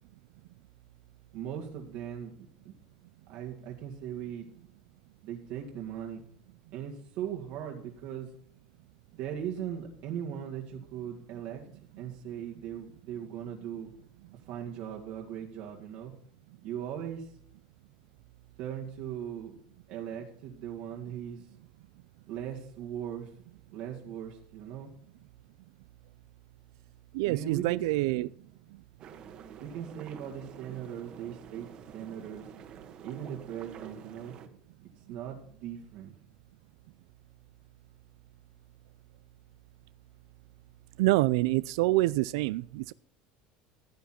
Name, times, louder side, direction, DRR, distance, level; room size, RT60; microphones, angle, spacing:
voice 1, 1.3-2.3 2.6-2.8 3.3-4.5 5.2-6.2 6.7-8.3 9.1-11.6 12.0-13.9 14.3-16.1 16.6-17.3 18.6-19.5 19.9-21.5 22.3-23.3 23.7-24.9 27.2-28.2 29.6-32.5 33.0-34.4 35.1-36.1, right 9 dB, 65° right, 0 dB, 2.2 m, -39 dB
voice 2, 27.1-28.3 41.0-42.9, right 19 dB, 90° right, 17 dB, 0.4 m, -26 dB
sound 1, 29.0-34.5, right 8 dB, 40° right, 1.5 m, -48 dB
15.5 x 9.6 x 4.4 m, 0.62 s
cardioid pair, 150°, 2 cm